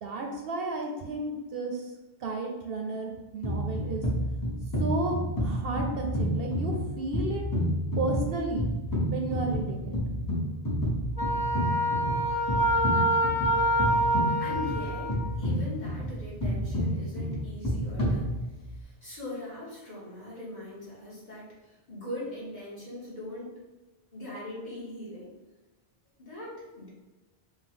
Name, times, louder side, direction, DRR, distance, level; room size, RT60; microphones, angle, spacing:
voice 1, 0.0-1.9 2.2-4.0 4.8-7.4 8.0-8.7 9.1-10.0, right 2 dB, 65° right, 2 dB, 0.8 m, -33 dB
sound 1, 3.4-18.8, equal, 20° left, 0.9 m, -30 dB
Wind instrument woodwind instrument, 11.2-15.3, equal, 10° right, 0.5 m, -26 dB
voice 2, 14.2-23.6 24.1-25.3 26.2-26.9, left 2 dB, 45° left, -7 dB, 1.7 m, -41 dB
5.3 x 2.4 x 3.7 m, 1.1 s
omnidirectional pair, 1.1 m